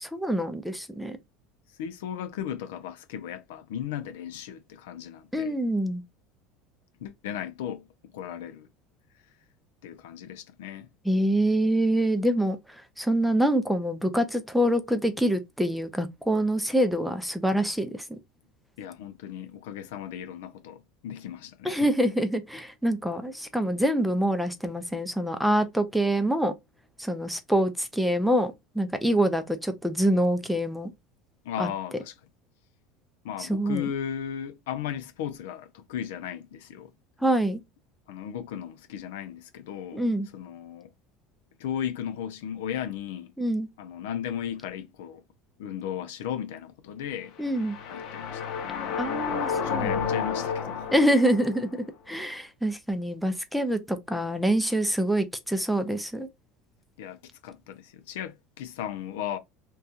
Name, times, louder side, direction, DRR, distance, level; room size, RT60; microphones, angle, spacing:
voice 1, 0.0-1.2 5.3-6.0 11.1-12.6 13.0-18.0 21.6-26.5 27.0-30.9 31.6-31.7 33.4-33.9 37.2-37.6 39.9-40.3 43.4-43.7 47.4-47.8 49.0-49.9 50.9-56.3, right 1 dB, ahead, 0.4 m, -25 dB
voice 2, 1.8-5.6 7.0-7.8 8.1-8.7 9.8-10.9 18.8-21.9 31.4-32.1 33.2-36.9 38.1-40.1 40.3-40.9 41.6-43.3 43.8-45.2 45.6-47.4 47.9-51.0 57.0-59.4, left 9 dB, 90° left, 0.5 m, -36 dB
sound 1, 47.4-51.7, left 6 dB, 55° left, 0.8 m, -31 dB
2.7 x 2.3 x 2.4 m
supercardioid pair, 125°, 0 cm